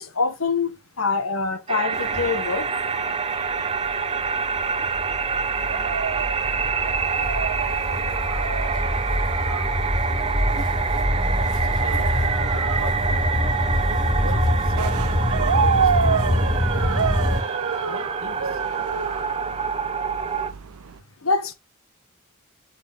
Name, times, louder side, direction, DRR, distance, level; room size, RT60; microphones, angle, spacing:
voice 1, 0.0-2.7 3.4-3.7 21.2-21.5, left 4 dB, 70° left, 1.6 m, -25 dB
sound 1, 1.7-20.5, right 5 dB, 25° right, 0.7 m, -27 dB
sound 2, 1.9-17.4, left 1 dB, 40° left, 5.7 m, -25 dB
sound 3, 1.9-21.0, right 7 dB, 85° right, 0.5 m, -30 dB
voice 2, 11.1-13.0 13.9-17.2 17.9-18.6, right 2 dB, 65° right, 1.9 m, -40 dB
9.9 x 4.3 x 3.6 m
head